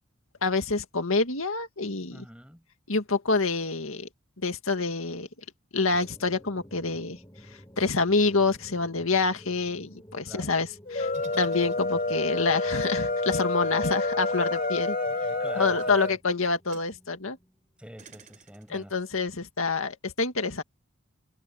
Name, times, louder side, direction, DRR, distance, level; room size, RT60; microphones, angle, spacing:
voice 1, 0.4-2.2 2.9-4.1 4.4-5.3 5.7-7.2 7.8-11.1 11.4-15.0 15.6-17.4 18.7-20.6, left 3 dB, 75° left, 2.0 m, -27 dB
voice 2, 2.1-2.7 10.3-10.5 15.0-16.2 17.8-19.0, equal, 5° right, 6.6 m, -46 dB
sound 1, 5.9-18.5, equal, 15° left, 7.4 m, -53 dB
sound 2, 10.9-16.2, left 2 dB, 40° left, 2.7 m, -28 dB
sound 3, 11.1-12.3 14.3-14.7 15.7-16.0 16.7-16.9 18.0-18.8, right 5 dB, 35° right, 4.7 m, -47 dB
head